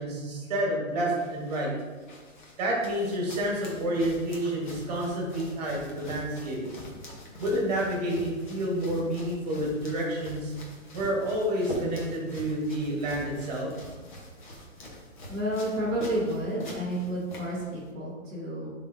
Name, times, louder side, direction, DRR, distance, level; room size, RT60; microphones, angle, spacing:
voice 1, 0.0-1.7 2.6-6.6 7.4-10.5 10.9-13.7, right 1 dB, 30° right, -2 dB, 1.5 m, -29 dB
sound 1, 0.9-17.9, left 1 dB, 35° left, 1.1 m, -44 dB
voice 2, 15.3-18.7, right 1 dB, 5° left, -18 dB, 0.7 m, -30 dB
10.5 x 3.9 x 2.7 m, 1.3 s
hypercardioid pair, 175°, 42 cm